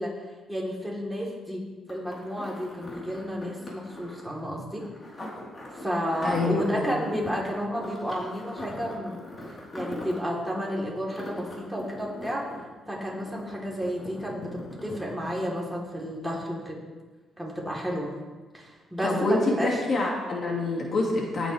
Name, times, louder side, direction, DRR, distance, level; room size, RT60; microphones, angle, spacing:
voice 1, 0.0-1.6 1.9-4.9 5.8-9.2 9.7-12.5 12.9-16.8 17.4-18.1 18.5-19.8, equal, 5° right, -4 dB, 4.0 m, -31 dB
sound 1, 1.9-15.7 16.0-16.1, left 1 dB, 30° left, 4.4 m, -41 dB
voice 2, 6.2-6.9 19.0-21.5, left 2 dB, 45° left, -2 dB, 2.6 m, -26 dB
18.5 x 9.9 x 3.6 m, 1.3 s
cardioid pair, 90°, 0 cm